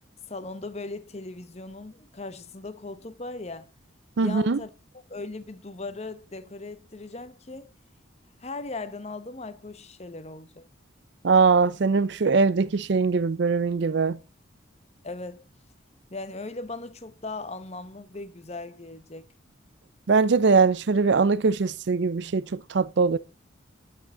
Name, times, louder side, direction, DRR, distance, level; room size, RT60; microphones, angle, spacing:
voice 1, 0.3-3.7 4.2-7.7 8.4-10.7 15.0-15.5 16.1-19.3, left 3 dB, 30° left, 0.8 m, -38 dB
voice 2, 4.2-4.6 11.2-14.2 20.1-23.2, right 4 dB, 60° right, 0.5 m, -21 dB
9.4 x 6.5 x 7.1 m
head